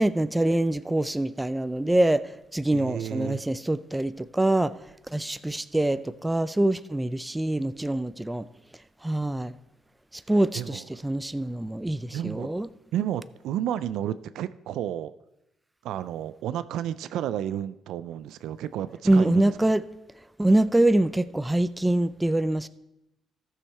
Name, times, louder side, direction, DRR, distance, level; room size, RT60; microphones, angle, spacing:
voice 1, 0.0-2.2 2.5-4.7 5.1-8.5 9.0-9.5 10.3-12.7 19.1-19.8 20.4-22.7, right 1 dB, 10° right, 14 dB, 0.4 m, -24 dB
voice 2, 2.7-3.4 10.5-10.8 12.1-12.5 12.9-15.1 15.8-19.5, right 11 dB, 85° right, 14 dB, 0.3 m, -31 dB
14.0 x 6.5 x 4.3 m, 0.91 s
cardioid pair, 90°, 0 cm